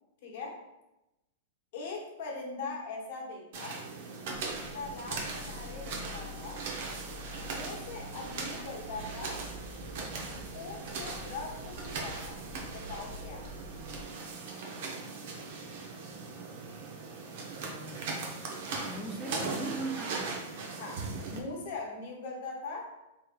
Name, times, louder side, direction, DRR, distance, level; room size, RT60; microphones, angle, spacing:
voice 1, 0.2-0.6 1.7-3.8 4.7-6.6 7.4-9.4 10.5-12.4 12.7-13.5 20.8-22.9, left 3 dB, 65° left, -1 dB, 0.9 m, -41 dB
sound 1, 3.5-21.4, right 4 dB, 60° right, 0.6 m, -39 dB
sound 2, 4.3-14.0, left 2 dB, 30° left, 0.8 m, -48 dB
voice 2, 17.4-18.2 18.9-20.4, right 2 dB, ahead, -3 dB, 0.4 m, -40 dB
3.5 x 3.1 x 2.2 m, 0.95 s
hypercardioid pair, 135°, 0 cm